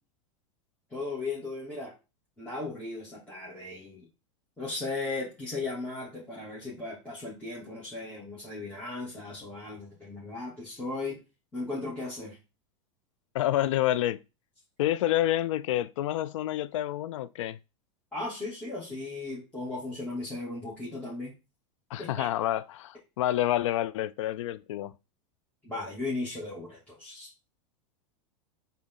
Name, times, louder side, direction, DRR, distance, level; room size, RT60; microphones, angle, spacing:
voice 1, 0.9-1.9 2.4-4.1 4.6-11.2 11.5-12.4 18.1-21.3 22.0-22.3 25.6-27.3, left 3 dB, 10° left, 2.9 m, -36 dB
voice 2, 13.3-14.2 14.8-17.6 21.9-24.9, left 13 dB, 75° left, 0.4 m, -28 dB
6.2 x 4.0 x 4.0 m
hypercardioid pair, 105°, 16 cm